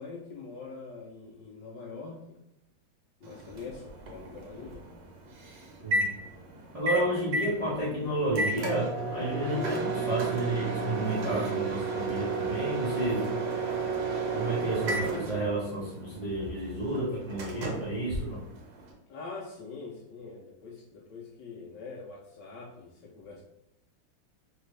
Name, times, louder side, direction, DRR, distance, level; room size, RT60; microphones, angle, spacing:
voice 1, 0.0-2.4 3.2-4.9 7.7-8.2 19.1-23.4, left 4 dB, 75° left, -2 dB, 1.0 m, -44 dB
Microwave oven, 3.2-18.9, right 3 dB, 65° right, 1.3 m, -33 dB
voice 2, 6.7-13.3 14.3-18.4, right 1 dB, 40° right, -8 dB, 0.5 m, -31 dB
3.3 x 3.3 x 3.1 m, 0.87 s
omnidirectional pair, 2.3 m